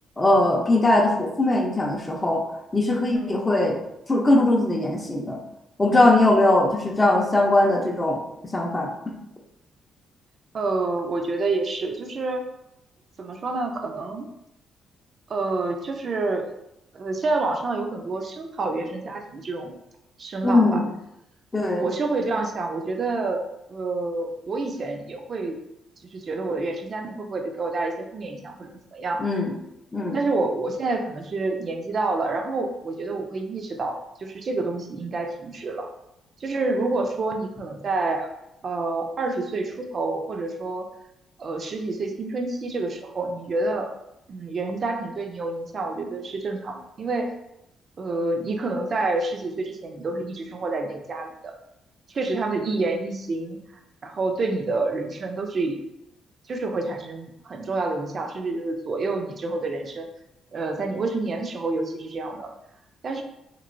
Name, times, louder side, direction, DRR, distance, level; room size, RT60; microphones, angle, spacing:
voice 1, 0.2-2.4 2.7-3.8 4.1-5.4 5.8-8.2 8.5-8.9 20.4-20.9 21.5-21.9 29.2-29.5 29.9-30.2, left 2 dB, 20° left, 0 dB, 0.6 m, -20 dB
voice 2, 3.1-3.4 10.5-12.4 13.2-14.3 15.3-16.5 16.9-19.7 20.2-20.8 21.7-25.6 26.1-29.2 30.1-35.9 36.4-38.3 38.6-40.9 41.4-43.9 44.3-47.3 48.0-51.5 52.1-53.6 54.0-55.8 56.5-60.1 60.5-62.5 63.0-63.2, right 3 dB, 45° right, 5 dB, 0.5 m, -28 dB
3.0 x 2.9 x 2.5 m, 0.84 s
cardioid pair, 90°, 0 cm